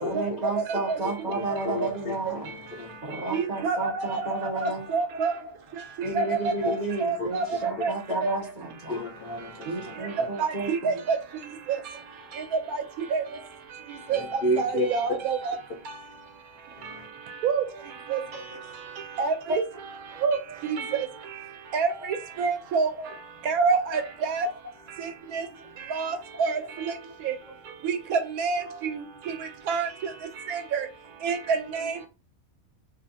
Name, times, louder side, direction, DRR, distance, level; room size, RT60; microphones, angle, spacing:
voice 1, 0.0-2.5 3.1-4.8 5.1-5.5 6.0-9.0 9.7-10.9 18.3-18.4 19.5-19.6 20.9-21.0 23.0-23.1 23.8-24.0 28.6-28.8 31.8-31.9, right 2 dB, 50° right, 0.5 m, -32 dB
voice 2, 0.5-1.0 1.8-1.9 3.3-5.3 6.0-7.9 8.2-8.3 10.2-11.2 11.7-11.8 12.7-12.8 13.1-13.2 14.1-15.6 17.4-17.6 18.1-18.2 19.2-19.6 20.2-20.4 20.6-21.1 21.7-22.9 23.5-24.5 25.0-25.5 25.9-26.9 27.2-27.3 27.8-29.3 29.7-29.9 30.5-30.9 31.2-32.1, right 5 dB, 85° right, 1.1 m, -27 dB
voice 3, 1.3-3.0 7.2-7.3 8.9-9.9 14.1-14.9 16.8-17.1, equal, 55° left, 0.6 m, -31 dB
2.5 x 2.5 x 2.6 m
omnidirectional pair, 1.5 m